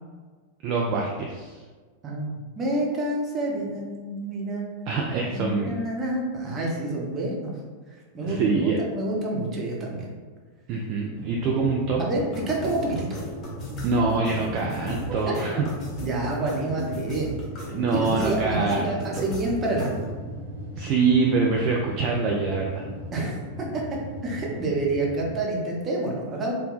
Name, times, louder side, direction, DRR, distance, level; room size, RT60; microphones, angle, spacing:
voice 1, 0.6-1.6 4.9-5.7 8.2-8.8 10.7-12.0 13.8-15.7 17.7-19.3 20.7-22.9, right 4 dB, 40° right, -1 dB, 0.4 m, -25 dB
voice 2, 2.0-4.6 5.3-7.5 8.1-10.1 12.0-13.1 15.3-15.4 16.0-17.3 17.9-20.1 23.1-23.8 24.2-26.5, right 2 dB, 25° right, -2 dB, 0.9 m, -28 dB
sound 1, 11.1-25.4, equal, 75° right, 1.0 m, -38 dB
sound 2, 12.1-20.1, equal, 30° left, 0.9 m, -38 dB
3.6 x 2.2 x 3.9 m, 1.4 s
figure-of-eight pair, 90°, 0 cm